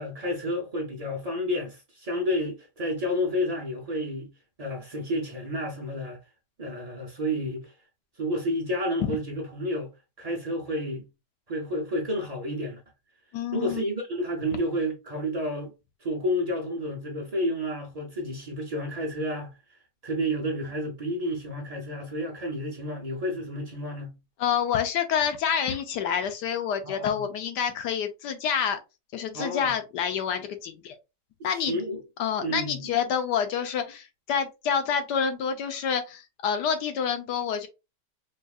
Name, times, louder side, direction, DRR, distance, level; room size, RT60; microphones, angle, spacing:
voice 1, 0.0-4.3 4.6-6.2 6.6-7.7 8.2-9.9 10.2-11.1 11.5-12.8 13.5-15.7 16.0-19.6 20.0-24.2 26.8-27.2 29.3-29.7 31.4-32.0 32.4-32.9, equal, 80° right, 0.3 m, -30 dB
voice 2, 13.3-13.8 24.4-28.8 29.1-30.9 31.4-31.8 32.2-37.7, left 7 dB, 75° left, 1.2 m, -28 dB
5.2 x 2.5 x 2.3 m
omnidirectional pair, 1.9 m